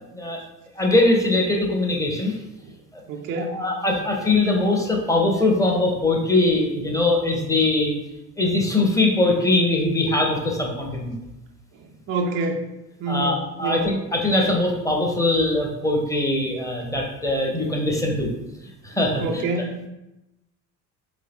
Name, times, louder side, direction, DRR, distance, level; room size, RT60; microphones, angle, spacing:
voice 1, 0.8-2.3 2.9-3.0 3.4-7.9 8.4-11.2 13.1-18.3 18.8-19.4, left 2 dB, 5° left, 0 dB, 0.8 m, -21 dB
voice 2, 3.1-3.6 11.8-12.7 13.0-13.9 18.9-19.8, right 2 dB, 30° right, 3 dB, 0.4 m, -28 dB
3.3 x 2.9 x 3.4 m, 0.93 s
figure-of-eight pair, 60°, 50 cm